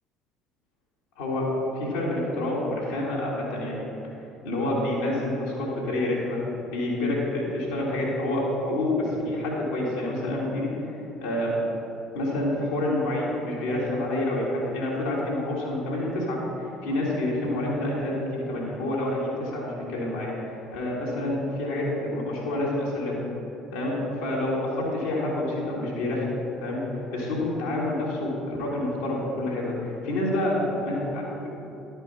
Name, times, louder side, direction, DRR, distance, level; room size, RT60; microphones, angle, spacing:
voice 1, 1.2-1.5 1.7-3.9 4.4-6.4 6.7-11.6 12.1-23.2 23.7-26.3 26.6-26.8 27.1-31.5, left 1 dB, 70° left, -7 dB, 2.3 m, -28 dB
11.5 x 5.6 x 5.6 m, 2.9 s
figure-of-eight pair, 55°, 0 cm